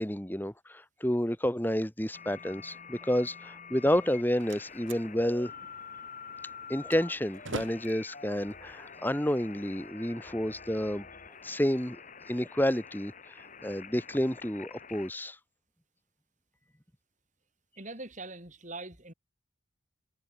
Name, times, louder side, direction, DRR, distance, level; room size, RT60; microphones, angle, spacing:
voice 1, 0.0-5.5 6.7-11.1 11.4-12.0 12.3-15.4, equal, 10° left, 1.6 m, -30 dB
sound 1, 2.1-15.1, left 6 dB, 35° left, 2.1 m, -47 dB
Slam, 3.9-9.9, right 2 dB, 70° right, 5.1 m, -46 dB
voice 2, 17.8-19.1, right 2 dB, 35° right, 6.4 m, -42 dB
head